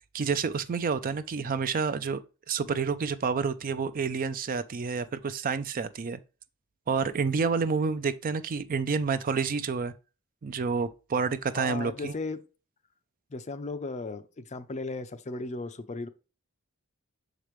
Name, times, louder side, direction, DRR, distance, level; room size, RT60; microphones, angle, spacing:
voice 1, 0.1-2.2 2.5-6.2 6.9-9.9 10.4-12.1, right 5 dB, 40° right, 0.4 m, -29 dB
voice 2, 11.5-12.4 13.3-16.1, left 3 dB, 30° left, 0.5 m, -36 dB
6.5 x 5.0 x 3.1 m
head